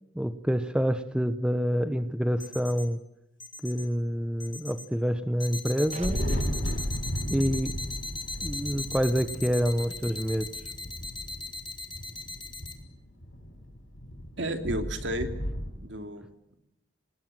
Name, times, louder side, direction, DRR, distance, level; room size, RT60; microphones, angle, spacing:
voice 1, 0.1-3.0 3.6-6.2 7.3-7.7 8.4-10.5, equal, 5° right, 11 dB, 0.8 m, -27 dB
sound 1, 2.4-2.8 3.4-3.8 4.4-4.8 5.4-12.7, left 2 dB, 25° left, 2.6 m, -38 dB
Thunder, 5.9-15.7, equal, 80° left, 7.4 m, -35 dB
sound 2, 5.9-7.0, right 1 dB, 40° right, 1.4 m, -38 dB
voice 2, 14.4-15.3 15.8-16.6, right 1 dB, 65° right, 6 dB, 2.7 m, -33 dB
25.5 x 20.5 x 7.5 m, 0.87 s
head